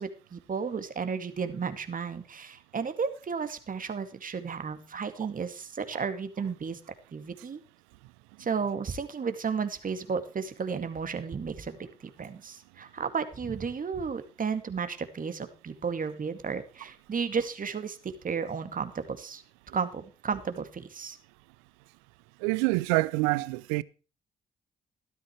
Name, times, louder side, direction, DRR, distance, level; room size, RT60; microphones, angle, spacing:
voice 1, 0.0-6.8 7.1-7.6 8.4-19.4 19.7-21.2, right 5 dB, 45° right, 2.3 m, -33 dB
voice 2, 22.4-23.8, right 22 dB, 90° right, 0.5 m, -26 dB
14.0 x 12.5 x 3.2 m
hypercardioid pair, 50°, 19 cm